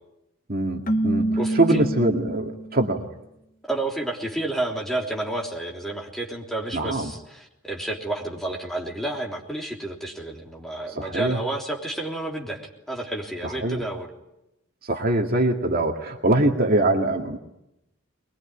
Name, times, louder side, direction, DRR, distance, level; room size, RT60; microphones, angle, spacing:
voice 1, 0.5-1.3 1.5-3.1 6.7-7.1 10.9-11.4 13.4-13.8 14.8-17.4, right 2 dB, 45° right, 3 dB, 2.1 m, -23 dB
Keyboard (musical), 0.9-2.8, right 1 dB, 45° left, 1.3 m, -26 dB
voice 2, 1.4-1.8 3.7-12.6 12.9-14.1, right 2 dB, ahead, -1 dB, 3.5 m, -30 dB
22.5 x 22.0 x 10.0 m, 0.87 s
head